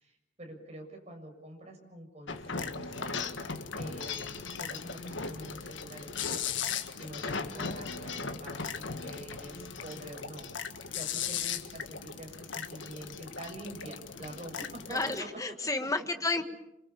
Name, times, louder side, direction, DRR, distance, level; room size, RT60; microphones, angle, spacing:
voice 1, 0.0-3.2 3.7-10.5 10.9-15.9, right 1 dB, 35° right, 2 dB, 7.1 m, -46 dB
sound 1, 2.3-15.2, left 6 dB, 90° left, 1.8 m, -37 dB
voice 2, 7.5-8.0 14.9-16.4, left 3 dB, 20° left, 7 dB, 1.7 m, -32 dB
28.0 x 27.0 x 7.1 m, 0.85 s
head